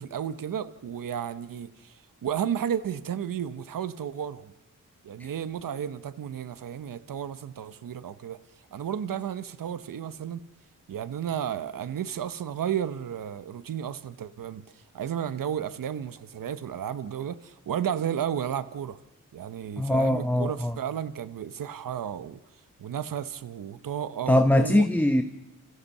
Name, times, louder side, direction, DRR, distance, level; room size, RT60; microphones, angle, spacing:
voice 1, 0.0-4.5 5.0-8.4 8.7-10.4 10.9-19.0 19.3-22.4 22.8-24.9, right 9 dB, 85° right, 1.0 m, -33 dB
voice 2, 19.8-20.8 24.3-25.2, left 1 dB, 5° left, 1.2 m, -22 dB
29.0 x 15.0 x 7.1 m
cardioid pair, 75°, 32 cm